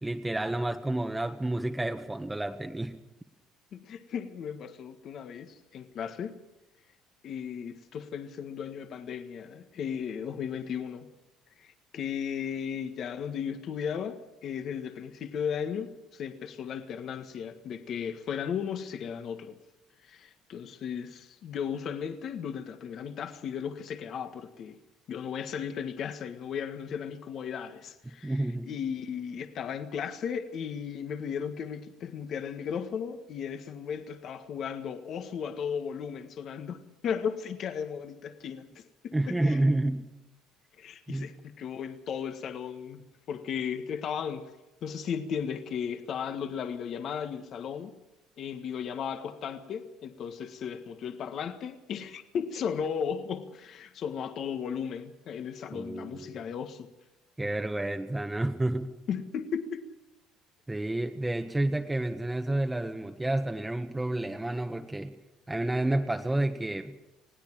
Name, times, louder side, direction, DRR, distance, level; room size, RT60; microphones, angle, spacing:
voice 1, 0.0-2.9 28.2-28.7 39.1-40.1 41.1-41.3 55.7-56.3 57.4-58.9 60.7-65.1 65.5-66.9, right 1 dB, 10° right, 1.4 m, -30 dB
voice 2, 3.7-6.4 7.2-11.1 11.6-19.6 20.0-24.8 25.1-39.7 40.8-44.5 44.8-48.0 48.4-56.9 59.1-59.9, left 7 dB, 55° left, 1.6 m, -35 dB
21.0 x 16.5 x 7.5 m
cardioid pair, 100°, 0 cm